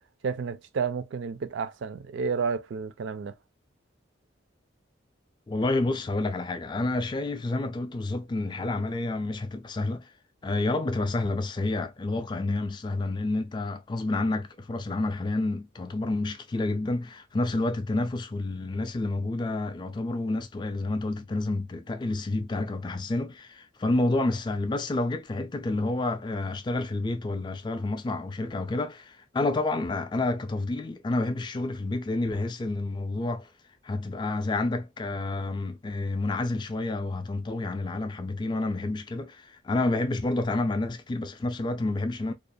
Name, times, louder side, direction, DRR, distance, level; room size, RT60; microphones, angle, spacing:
voice 1, 0.2-3.3, right 5 dB, 75° right, 0.4 m, -31 dB
voice 2, 5.5-10.1 10.4-33.5 33.8-42.3, left 2 dB, 25° left, 0.3 m, -29 dB
2.4 x 2.1 x 2.6 m
head